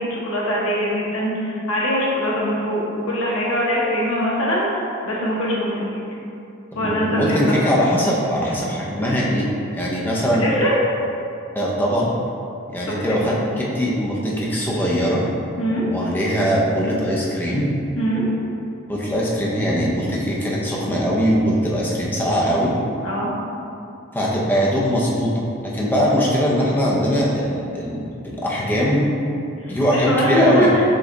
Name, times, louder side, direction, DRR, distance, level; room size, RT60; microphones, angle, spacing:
voice 1, 0.0-4.8 5.0-6.0 6.7-7.6 10.3-10.7 12.9-13.4 15.6-15.8 18.0-18.2 23.0-23.3 29.6-30.8, equal, 80° left, -5 dB, 1.0 m, -22 dB
voice 2, 6.7-9.5 9.7-10.4 11.5-12.1 12.7-15.2 15.8-17.7 18.9-22.7 24.1-29.0 29.7-30.7, equal, 10° left, -5 dB, 0.6 m, -21 dB
5.0 x 2.3 x 3.8 m, 2.6 s
head